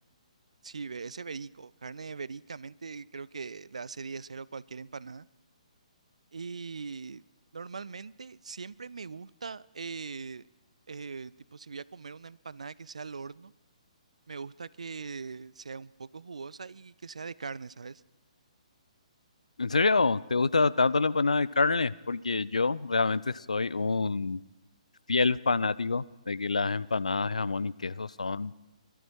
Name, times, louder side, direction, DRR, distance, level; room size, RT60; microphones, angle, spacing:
voice 1, 0.6-5.3 6.3-7.2 7.5-10.5 10.9-13.5 14.3-18.0, right 5 dB, 65° right, 21 dB, 0.4 m, -41 dB
voice 2, 19.6-24.4 25.1-28.5, left 4 dB, 75° left, 18 dB, 0.4 m, -27 dB
21.0 x 12.5 x 4.6 m, 0.99 s
figure-of-eight pair, 130°, 4 cm